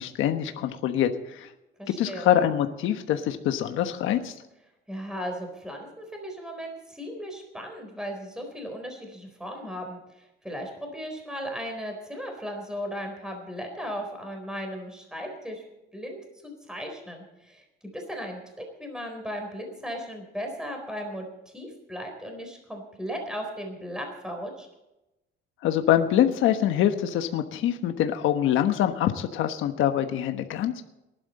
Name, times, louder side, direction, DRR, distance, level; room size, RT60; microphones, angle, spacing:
voice 1, 0.0-1.5 2.0-4.3 25.6-30.9, left 10 dB, 75° left, 7 dB, 1.3 m, -24 dB
voice 2, 1.8-2.3 4.9-15.6 15.9-17.6 17.9-18.4 18.8-21.3 21.5-24.7, equal, 5° right, 3 dB, 4.1 m, -36 dB
19.5 x 11.5 x 4.2 m, 0.91 s
cardioid pair, 140°, 21 cm